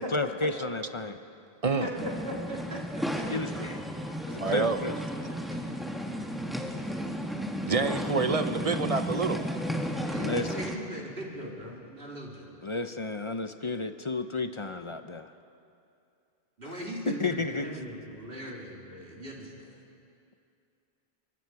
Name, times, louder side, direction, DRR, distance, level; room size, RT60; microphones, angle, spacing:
voice 1, 0.1-1.2 3.3-3.8 4.3-4.9 10.0-10.6 12.6-15.3 16.6-16.8 17.1-17.7, left 3 dB, 35° left, 9 dB, 0.6 m, -32 dB
voice 2, 1.8-2.8 3.1-3.2 10.0-12.5 16.6-19.7, right 1 dB, 60° right, -3 dB, 3.4 m, -39 dB
sound 1, 1.9-10.8, equal, ahead, 1.3 m, -33 dB
voice 3, 4.4-4.9 7.6-9.5, right 4 dB, 40° right, 9 dB, 0.7 m, -27 dB
24.5 x 22.0 x 4.8 m, 2.5 s
omnidirectional pair, 1.1 m